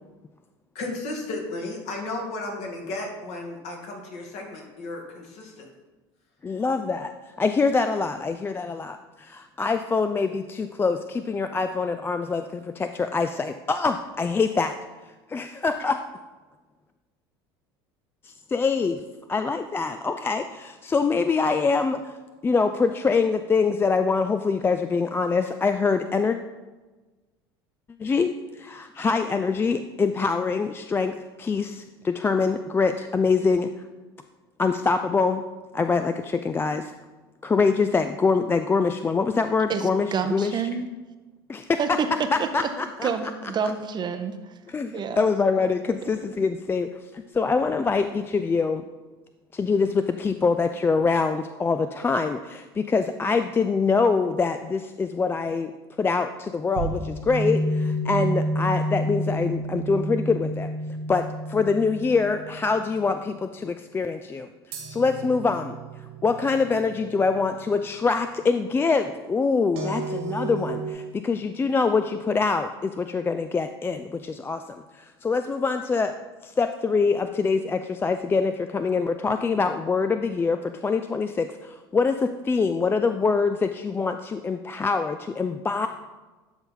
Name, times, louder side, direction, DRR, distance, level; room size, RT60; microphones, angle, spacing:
voice 1, 0.8-5.7, left 2 dB, 60° left, 1 dB, 1.9 m, -34 dB
voice 2, 6.4-7.1 7.4-9.0 9.6-11.0 11.3-12.4 12.8-14.7 15.3-16.0 18.5-19.0 19.3-20.4 20.9-22.0 22.4-26.4 28.0-28.3 28.7-31.1 31.4-31.7 32.1-33.7 34.6-35.4 35.7-36.1 36.4-36.8 37.4-40.6 41.5-41.6 42.5-43.1 44.7-44.9 45.2-46.9 47.4-48.8 49.6-52.4 52.9-55.7 56.0-57.0 57.3-57.6 58.1-60.7 61.1-61.2 61.5-63.3 63.6-64.4 65.0-65.7 66.2-70.8 71.2-72.7 73.0-74.0 74.4-74.6 75.2-76.1 76.6-80.6 80.8-81.5 81.9-82.2 82.5-85.9, left 4 dB, 20° left, 9 dB, 0.3 m, -24 dB
voice 3, 39.7-40.9 41.8-42.1 42.4-42.5 43.0-44.5 44.9-45.3, right 6 dB, 35° right, 8 dB, 0.6 m, -28 dB
sound 1, 56.8-63.0 64.7-67.5 69.8-70.9, right 1 dB, 75° right, 1.9 m, -30 dB
11.5 x 4.1 x 3.8 m, 1.2 s
hypercardioid pair, 75°, 13 cm